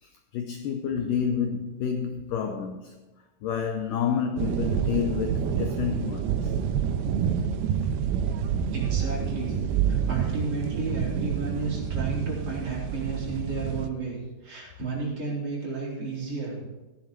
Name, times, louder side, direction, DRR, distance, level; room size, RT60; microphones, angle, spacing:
voice 1, 0.0-2.9 3.4-6.5 15.0-15.1, left 7 dB, 85° left, 1.8 m, -29 dB
sound 1, 4.4-13.9, right 7 dB, 80° right, 2.6 m, -28 dB
voice 2, 8.7-9.5 9.9-16.7, right 4 dB, 35° right, 4.5 m, -32 dB
15.0 x 10.5 x 4.5 m
omnidirectional pair, 4.8 m